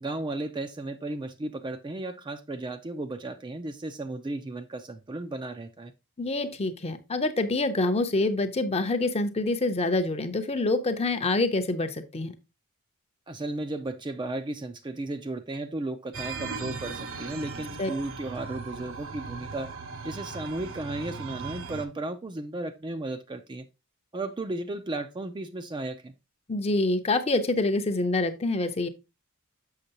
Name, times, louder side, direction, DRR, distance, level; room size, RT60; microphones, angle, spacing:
voice 1, 0.0-5.9 13.3-19.7 20.0-23.7 24.1-26.1, right 2 dB, 20° right, 0.4 m, -34 dB
voice 2, 6.2-12.3 17.8-17.9 26.5-28.9, left 2 dB, 30° left, 0.6 m, -26 dB
sound 1, 16.1-21.9, right 4 dB, 60° right, 0.7 m, -38 dB
6.6 x 6.1 x 2.8 m
head